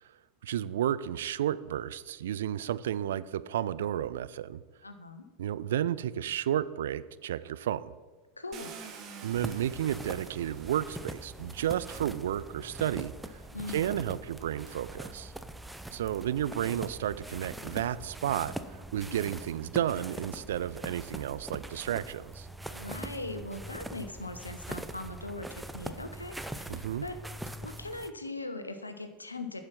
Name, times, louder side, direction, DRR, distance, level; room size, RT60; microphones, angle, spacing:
voice 1, 0.4-4.6 5.4-7.9 9.2-13.1 13.7-15.3 15.9-18.5 18.9-22.5 26.7-27.0, right 11 dB, 65° right, 16 dB, 0.3 m, -32 dB
voice 2, 4.8-5.2 8.4-8.7 13.5-13.9 22.7-27.2 27.6-29.6, left 2 dB, 85° left, 9 dB, 0.8 m, -40 dB
Car, 8.5-12.6 13.6-13.7 14.2-17.5, right 6 dB, 35° right, 1.3 m, -51 dB
sound 1, 9.3-28.1, right 1 dB, 5° right, 0.5 m, -43 dB
10.5 x 5.6 x 5.9 m, 1.3 s
figure-of-eight pair, 80°, 0 cm